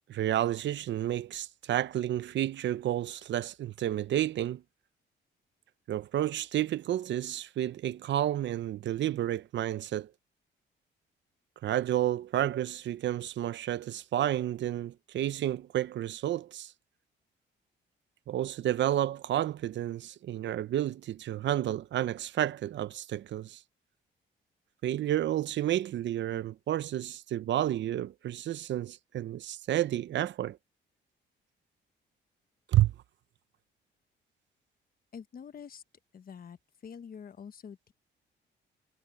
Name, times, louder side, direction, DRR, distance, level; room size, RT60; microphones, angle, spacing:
voice 1, 0.1-4.6 5.9-10.1 11.6-16.7 18.3-23.6 24.8-30.6 32.7-32.9, right 12 dB, 65° right, 0.7 m, -30 dB
voice 2, 35.1-35.8 36.1-36.6 36.8-37.9, left 7 dB, 45° left, 1.3 m, -46 dB
cardioid pair, 90°, 20 cm